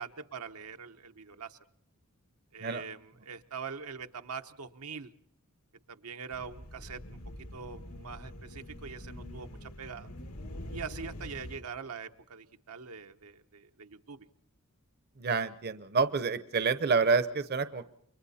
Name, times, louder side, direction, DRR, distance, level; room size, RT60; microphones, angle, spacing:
voice 1, 0.0-1.6 2.5-5.1 5.9-7.2 7.5-10.1 10.7-14.3, right 6 dB, 85° right, 7 dB, 1.0 m, -43 dB
sound 1, 6.3-11.6, left 1 dB, 90° left, 2.0 m, -44 dB
voice 2, 15.2-17.9, right 4 dB, 45° right, 13 dB, 0.8 m, -28 dB
29.5 x 23.5 x 4.2 m, 0.68 s
head